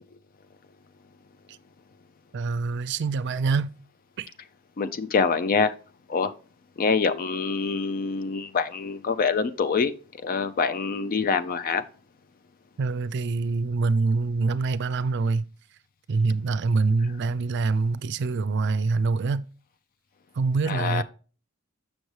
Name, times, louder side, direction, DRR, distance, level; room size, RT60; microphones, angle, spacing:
voice 1, 2.3-3.7 4.2-4.3 12.8-15.5 16.1-19.4 20.3-21.0, right 4 dB, 60° right, 0.4 m, -25 dB
voice 2, 4.8-5.7 6.1-6.3 6.8-9.9 10.2-11.8 20.7-21.0, left 5 dB, 45° left, 0.4 m, -25 dB
6.6 x 6.2 x 3.1 m
head